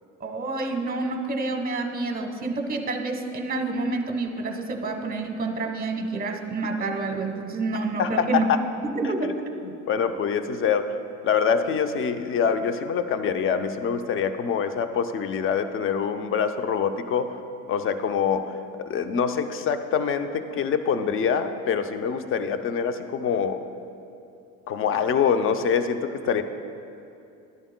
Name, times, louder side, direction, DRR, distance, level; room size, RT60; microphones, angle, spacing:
voice 1, 0.2-8.5 8.9-9.3, right 3 dB, 25° right, 5 dB, 1.1 m, -28 dB
voice 2, 8.0-8.6 9.9-11.0 11.2-17.4 17.7-18.5 18.9-23.6 24.7-26.4, left 7 dB, 35° left, 9 dB, 0.6 m, -25 dB
12.0 x 10.5 x 2.2 m, 2.7 s
hypercardioid pair, 85°, 39 cm